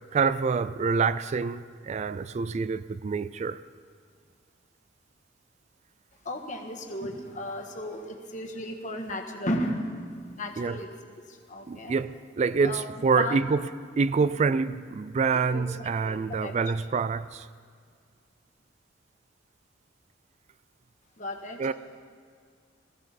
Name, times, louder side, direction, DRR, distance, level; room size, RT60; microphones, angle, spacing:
voice 1, 0.1-3.6 10.6-10.8 11.7-13.7 14.0-17.5 21.6-21.7, right 5 dB, 35° right, 0.3 m, -26 dB
voice 2, 6.2-10.0 10.4-10.9 11.3-12.0 12.6-13.5 15.3-16.5 21.2-21.7, left 1 dB, 40° left, 1.6 m, -35 dB
21.0 x 15.0 x 4.2 m
head